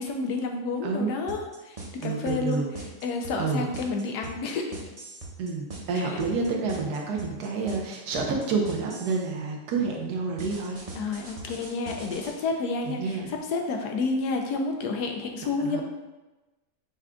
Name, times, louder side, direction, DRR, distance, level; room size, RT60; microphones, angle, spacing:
voice 1, 0.0-2.6 3.0-4.7 6.0-6.2 11.0-15.8, left 3 dB, 90° left, 3 dB, 1.2 m, -30 dB
voice 2, 0.8-1.1 2.0-2.7 3.4-3.7 5.4-10.8 12.8-13.3 15.6-15.8, right 4 dB, 80° right, 0 dB, 1.4 m, -29 dB
sound 1, 1.3-9.3 10.4-12.3, right 2 dB, 35° right, 0.6 m, -41 dB
6.0 x 2.3 x 3.7 m, 1.1 s
omnidirectional pair, 1.7 m